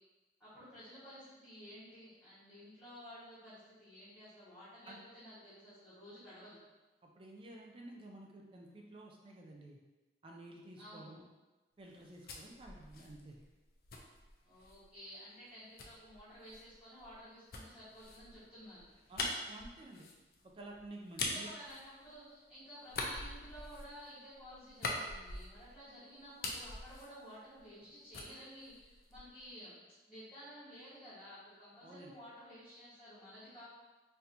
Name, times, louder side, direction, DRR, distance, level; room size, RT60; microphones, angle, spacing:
voice 1, 0.4-6.6 10.8-11.1 14.4-18.9 21.3-29.8 30.1-33.7, equal, 5° left, -16 dB, 1.2 m, -53 dB
voice 2, 7.0-9.8 10.2-11.2 11.8-13.4 19.1-20.1 20.5-21.5 31.8-32.2, right 1 dB, 30° right, -1 dB, 0.4 m, -52 dB
sound 1, 11.9-14.9 15.8-22.4 22.8-25.9 26.2-27.9 28.1-29.4, left 2 dB, 55° left, 0.5 m, -44 dB
4.2 x 2.7 x 2.5 m, 1.2 s
head